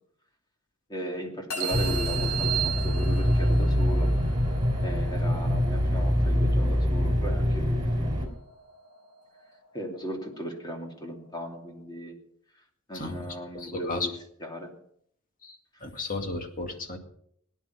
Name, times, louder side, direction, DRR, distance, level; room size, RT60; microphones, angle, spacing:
voice 1, 0.9-4.1 4.8-8.1 9.7-12.2 12.9-14.1 14.4-14.7 15.7-15.8, equal, 20° left, 2 dB, 2.7 m, -37 dB
sound 1, 1.5-11.8, left 2 dB, 75° left, 5.9 m, -44 dB
sound 2, 1.6-3.5, right 14 dB, 85° right, 0.7 m, -32 dB
sound 3, 1.7-8.3, equal, 20° right, 3.4 m, -25 dB
voice 2, 12.9-14.1 15.4-17.0, left 2 dB, 40° left, 4 dB, 2.3 m, -34 dB
18.5 x 10.0 x 5.7 m, 0.67 s
head